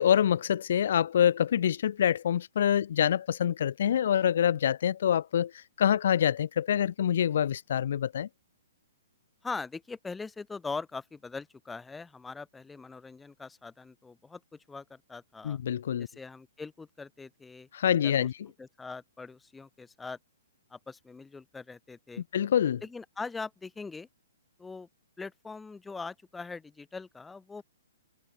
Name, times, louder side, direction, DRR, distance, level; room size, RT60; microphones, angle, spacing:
voice 1, 0.0-8.3 15.4-16.1 17.7-18.3 22.3-22.8, left 9 dB, 65° left, 0.7 m, -26 dB
voice 2, 9.4-14.4 14.7-15.6 16.0-17.7 18.0-18.3 18.6-20.2 20.7-22.2 22.8-24.1 24.6-24.9 25.2-27.6, left 4 dB, 10° left, 4.3 m, -41 dB
hypercardioid pair, 135°, 0 cm